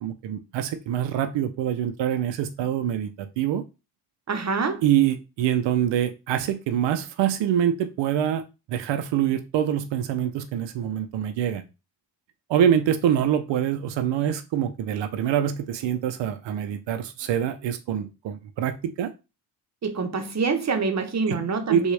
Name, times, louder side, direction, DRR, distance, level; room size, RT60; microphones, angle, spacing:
voice 1, 0.0-3.6 4.8-8.4 8.7-11.6 12.5-19.1 21.3-21.4 21.7-21.8, right 10 dB, 80° right, 0.5 m, -25 dB
voice 2, 4.3-4.8 19.8-21.9, right 4 dB, 40° right, 0.8 m, -26 dB
3.4 x 2.3 x 3.2 m
cardioid pair, 65°, 43 cm